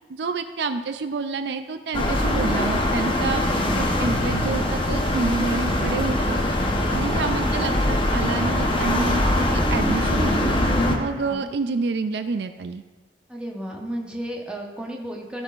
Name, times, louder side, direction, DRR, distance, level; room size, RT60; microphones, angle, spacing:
voice 1, 0.1-3.5 3.7-6.4 6.9-10.5 11.0-12.8, right 4 dB, 70° right, 9 dB, 0.4 m, -28 dB
sound 1, 1.9-11.0, left 1 dB, 30° left, 0.9 m, -22 dB
voice 2, 3.4-3.9 7.2-7.8 11.2-11.5 13.3-15.4, equal, 5° right, -1 dB, 1.0 m, -34 dB
15.0 x 6.2 x 2.5 m, 1.3 s
head